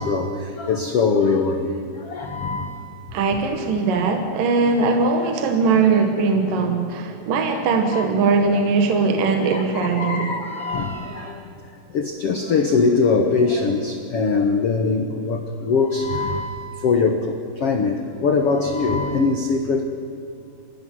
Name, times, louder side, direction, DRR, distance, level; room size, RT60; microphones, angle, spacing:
voice 1, 0.0-2.8 5.9-6.0 7.5-7.6 7.9-8.0 9.4-11.5 11.9-19.8, left 4 dB, 65° left, 5 dB, 1.4 m, -22 dB
voice 2, 3.1-10.3, right 4 dB, 65° right, 5 dB, 3.0 m, -20 dB
27.5 x 16.5 x 9.5 m, 2.6 s
omnidirectional pair, 4.6 m